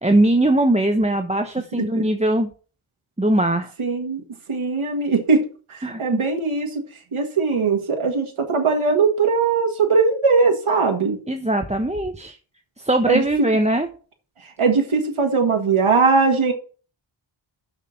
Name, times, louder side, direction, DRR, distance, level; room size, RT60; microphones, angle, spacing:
voice 1, 0.0-2.5 3.2-3.7 5.8-6.2 11.3-12.4 12.8-13.9, right 1 dB, 15° right, 5 dB, 1.1 m, -20 dB
voice 2, 3.8-4.2 4.5-5.4 5.7-6.8 7.1-11.2 13.1-13.5 14.6-16.5, right 4 dB, 85° right, 3 dB, 1.9 m, -20 dB
7.2 x 6.6 x 7.7 m, 0.39 s
wide cardioid pair, 60°, 48 cm